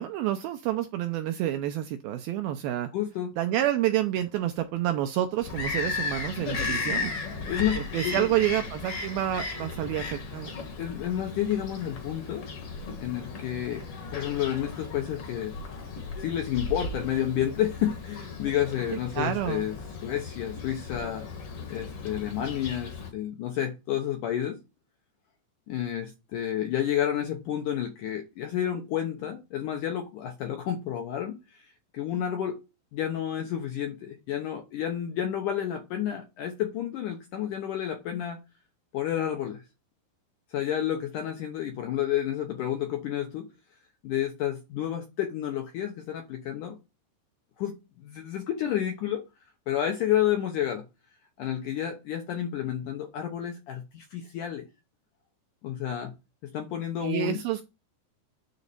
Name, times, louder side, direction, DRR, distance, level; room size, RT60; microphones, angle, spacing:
voice 1, 0.0-2.9 3.4-7.1 7.9-10.5 19.2-19.7 57.0-57.6, right 12 dB, 85° right, 7 dB, 2.2 m, -28 dB
voice 2, 2.9-3.3 7.5-8.3 10.8-12.4 13.0-13.8 14.1-15.5 16.2-21.3 21.7-24.6 25.7-31.7 31.9-32.6 32.9-38.4 38.9-39.6 40.5-43.5 44.0-46.8 47.6-49.2 49.7-50.8 51.4-54.6 55.6-56.1 56.4-57.4, left 10 dB, 75° left, 4 dB, 1.9 m, -30 dB
Bird vocalization bird call bird song, 5.4-23.1, left 4 dB, 55° left, 1.7 m, -36 dB
9.6 x 4.0 x 6.8 m, 0.27 s
omnidirectional pair, 4.9 m